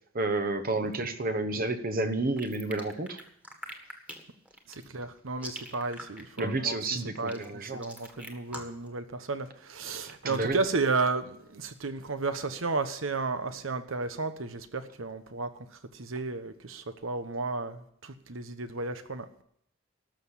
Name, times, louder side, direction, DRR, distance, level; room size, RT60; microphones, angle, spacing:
voice 1, 0.1-3.2 6.4-7.8 10.2-10.6, right 2 dB, 45° right, 10 dB, 1.0 m, -30 dB
sound 1, 2.4-8.9, equal, 5° right, 1.7 m, -43 dB
voice 2, 4.7-19.3, right 3 dB, 90° right, 10 dB, 1.1 m, -33 dB
13.0 x 6.6 x 9.8 m, 0.68 s
head